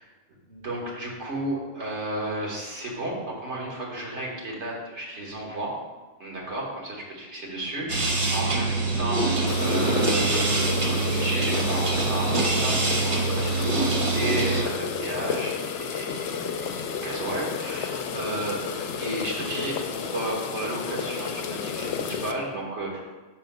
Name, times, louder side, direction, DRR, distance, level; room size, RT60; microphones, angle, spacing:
voice 1, 0.5-5.7 6.2-23.1, right 1 dB, 90° right, -2 dB, 1.8 m, -33 dB
sound 1, 7.9-14.6, right 3 dB, 30° right, 0.8 m, -24 dB
Pot Boiling Stove loop, 9.5-22.3, left 7 dB, 85° left, 0.9 m, -32 dB
5.6 x 4.2 x 5.2 m, 1.2 s
omnidirectional pair, 1.1 m